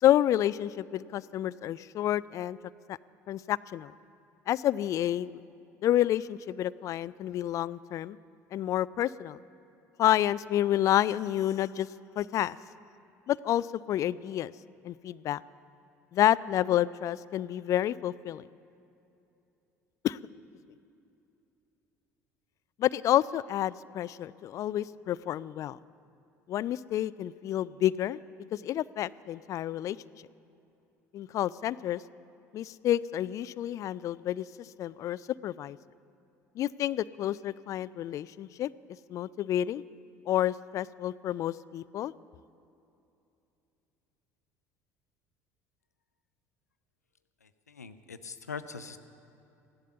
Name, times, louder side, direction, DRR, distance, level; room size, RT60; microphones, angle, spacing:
voice 1, 0.0-2.6 2.9-3.0 3.3-3.9 4.5-5.4 5.8-8.2 8.5-9.4 10.0-11.9 12.2-12.6 13.3-14.5 14.8-15.4 16.1-18.5 20.0-20.2 22.8-25.8 26.5-28.2 28.5-30.0 31.1-32.0 32.5-34.5 34.8-35.8 36.6-38.7 39.1-39.8 40.3-42.1, left 12 dB, 40° left, 19 dB, 0.3 m, -29 dB
voice 2, 47.4-49.0, left 5 dB, 80° left, 11 dB, 0.6 m, -42 dB
15.5 x 11.5 x 6.9 m, 2.8 s
figure-of-eight pair, 60°, 8 cm